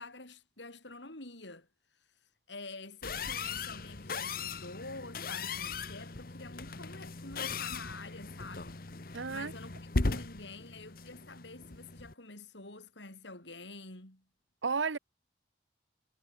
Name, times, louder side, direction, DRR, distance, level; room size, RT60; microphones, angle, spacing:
voice 1, 0.0-1.7 2.5-14.2, left 2 dB, 75° left, 6.7 m, -48 dB
sound 1, 3.0-12.1, left 3 dB, 50° left, 1.3 m, -38 dB
voice 2, 9.1-9.5 14.6-15.0, right 5 dB, 90° right, 0.9 m, -32 dB
head